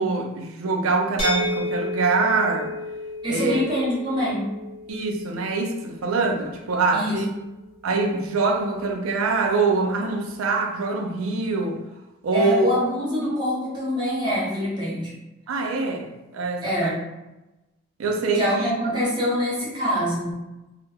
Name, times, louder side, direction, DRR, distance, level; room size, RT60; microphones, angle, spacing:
voice 1, 0.0-2.7 3.3-3.6 4.9-7.3 7.8-11.8 12.2-12.7 15.5-17.0 18.0-18.7, right 3 dB, 85° right, 0.4 m, -24 dB
sound 1, 1.2-7.0, left 1 dB, 25° left, 0.6 m, -32 dB
voice 2, 3.2-4.5 6.9-7.2 12.3-15.1 16.6-17.0 18.3-20.4, equal, 20° right, 0.8 m, -25 dB
2.1 x 2.0 x 3.3 m
head